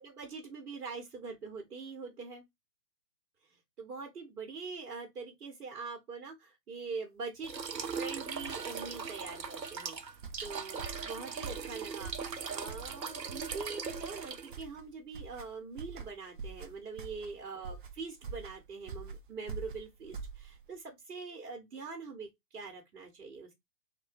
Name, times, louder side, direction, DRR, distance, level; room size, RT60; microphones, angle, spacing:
voice 1, 0.0-2.4 3.8-23.5, right 4 dB, 65° right, 1.5 m, -43 dB
sound 1, 7.4-14.6, right 6 dB, 85° right, 0.8 m, -40 dB
sound 2, 10.1-20.8, right 5 dB, 35° right, 0.4 m, -45 dB
3.1 x 2.6 x 4.2 m
figure-of-eight pair, 120°, 49 cm